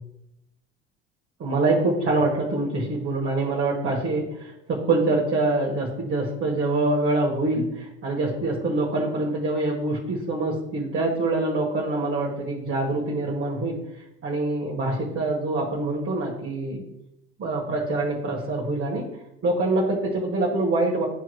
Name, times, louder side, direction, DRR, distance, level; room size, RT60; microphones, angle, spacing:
voice 1, 1.4-13.8 14.2-16.8 17.4-19.0 19.4-21.0, right 2 dB, 35° right, -4 dB, 1.6 m, -25 dB
11.0 x 4.5 x 2.3 m, 0.83 s
figure-of-eight pair, 60°, 35 cm